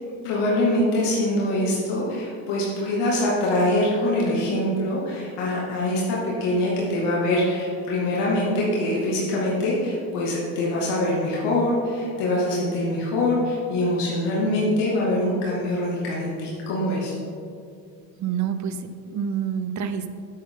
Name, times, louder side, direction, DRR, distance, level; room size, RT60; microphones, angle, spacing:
voice 1, 0.2-17.1, left 1 dB, 70° left, -6 dB, 2.4 m, -24 dB
voice 2, 18.2-20.1, right 8 dB, 40° right, 10 dB, 0.8 m, -28 dB
9.8 x 8.8 x 3.8 m, 2.3 s
hypercardioid pair, 75°, 43 cm